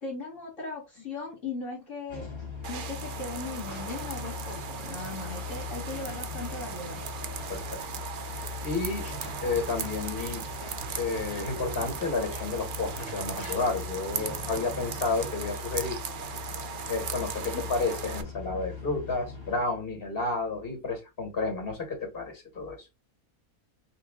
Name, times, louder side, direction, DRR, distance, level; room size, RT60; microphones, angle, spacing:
voice 1, 0.0-2.3 2.7-7.0 17.4-17.6, left 3 dB, 60° left, -2 dB, 1.8 m, -38 dB
sound 1, 2.1-19.6, left 5 dB, 20° left, 1.2 m, -40 dB
sound 2, 2.6-18.2, right 7 dB, 60° right, 0.5 m, -38 dB
voice 2, 8.3-9.1 9.4-10.4 11.0-16.0 16.9-22.9, left 3 dB, 40° left, 4 dB, 2.0 m, -31 dB
5.7 x 2.4 x 3.6 m, 0.24 s
omnidirectional pair, 1.5 m